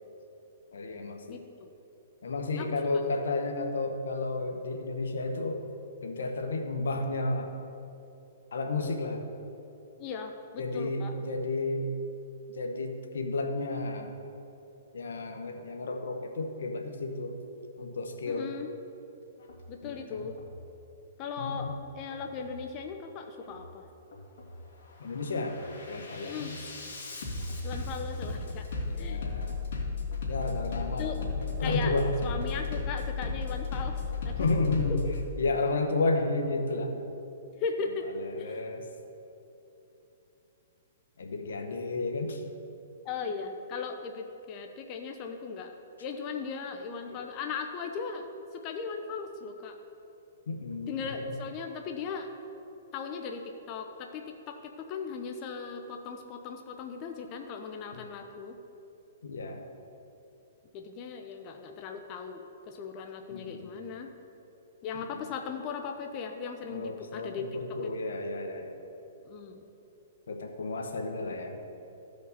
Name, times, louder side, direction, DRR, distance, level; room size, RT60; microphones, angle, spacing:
voice 1, 0.7-1.4 2.2-5.6 6.0-7.5 8.5-9.2 10.6-11.9 12.5-14.1 14.9-17.4 17.8-18.5 19.8-20.3 21.4-21.8 25.0-26.6 28.9-29.5 30.3-32.1 34.4-35.0 35.4-36.9 38.1-38.8 41.2-42.4 47.0-47.2 50.5-51.3 57.9-58.0 59.2-59.6 63.3-63.7 64.9-65.0 66.7-68.7 70.3-71.6, left 3 dB, 85° left, 4 dB, 1.1 m, -32 dB
voice 2, 1.3-1.7 2.6-2.7 10.0-11.1 18.3-18.7 19.7-20.3 21.2-23.9 26.2-26.5 27.6-28.7 29.0-29.2 31.0-31.2 31.6-31.9 32.2-34.5 34.9-35.1 37.6-38.1 38.4-38.7 43.0-45.7 46.0-48.3 48.5-49.8 50.9-52.3 52.9-53.4 53.7-58.6 60.7-64.1 64.8-67.5 67.8-67.9 69.3-69.6, left 5 dB, 35° left, 4 dB, 0.6 m, -38 dB
Bass drum, 19.4-19.6 20.1-20.6 21.4-21.6 22.1-22.6 23.4-23.6 24.1-24.6 25.0-35.2, left 4 dB, 65° left, 2.2 m, -35 dB
15.0 x 5.1 x 4.1 m, 2.9 s
hypercardioid pair, 145°, 0 cm